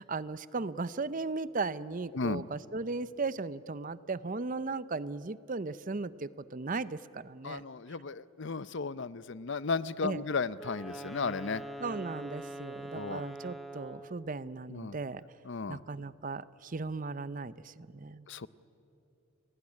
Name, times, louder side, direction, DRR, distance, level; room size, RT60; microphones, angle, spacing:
voice 1, 0.0-7.6 10.0-10.2 11.8-15.2 15.7-18.2, right 3 dB, 35° right, 16 dB, 0.6 m, -37 dB
voice 2, 7.4-11.6 12.9-13.2 14.7-15.0 15.5-15.8 18.3-18.5, left 4 dB, 55° left, 17 dB, 0.6 m, -34 dB
Wind instrument woodwind instrument, 10.5-14.2, right 1 dB, ahead, 1.5 m, -43 dB
30.0 x 19.5 x 9.8 m, 2.8 s
head